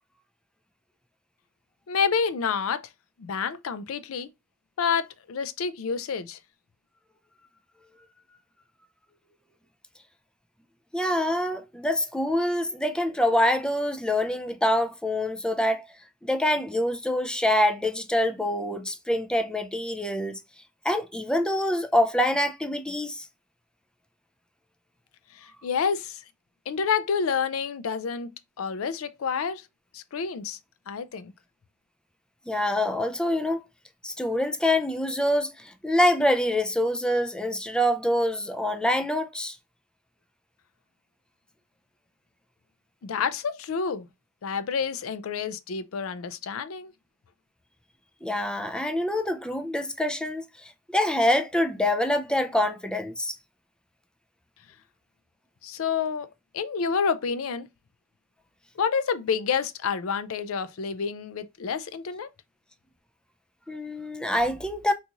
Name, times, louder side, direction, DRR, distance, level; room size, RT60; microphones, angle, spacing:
voice 1, 1.9-2.8 3.2-4.3 4.8-6.4 25.3-26.2 26.7-29.7 29.9-30.6 30.9-31.3 43.0-44.1 44.4-46.9 55.6-56.3 56.5-57.7 58.8-62.3, left 6 dB, 70° left, 0.4 m, -28 dB
voice 2, 10.9-15.9 16.3-20.4 20.8-23.3 32.5-33.6 34.0-39.6 48.2-53.4 63.7-64.9, left 1 dB, 5° left, 0.4 m, -25 dB
3.9 x 2.4 x 2.8 m
head